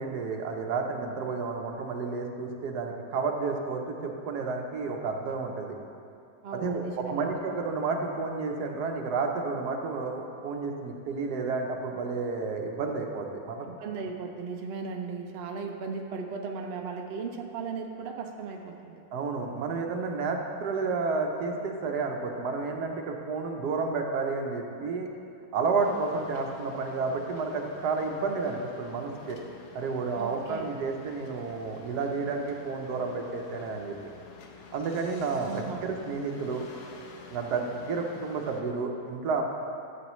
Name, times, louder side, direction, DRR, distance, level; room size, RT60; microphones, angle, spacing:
voice 1, 0.0-5.8 6.5-13.7 19.1-25.1 25.5-29.4 29.7-34.0 34.7-36.6 37.3-39.4, right 4 dB, 75° right, 3 dB, 1.4 m, -31 dB
voice 2, 6.4-7.3 13.6-19.0 30.1-30.7 35.4-35.9, right 5 dB, 55° right, 3 dB, 0.7 m, -37 dB
sound 1, 25.8-38.6, left 4 dB, 75° left, 1.3 m, -49 dB
12.5 x 7.1 x 3.1 m, 2.6 s
omnidirectional pair, 1.7 m